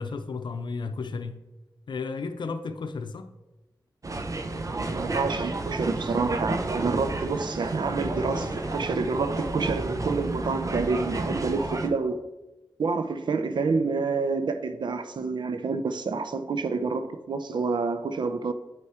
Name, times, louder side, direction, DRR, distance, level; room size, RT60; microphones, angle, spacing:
voice 1, 0.0-1.4 1.9-3.3, left 4 dB, 80° left, 0.5 m, -33 dB
sound 1, 4.0-11.9, right 2 dB, 45° right, 0.7 m, -31 dB
voice 2, 4.4-12.3 12.8-18.5, right 4 dB, 75° right, 0.6 m, -28 dB
8.8 x 4.7 x 4.3 m
cardioid pair, 50°, 8 cm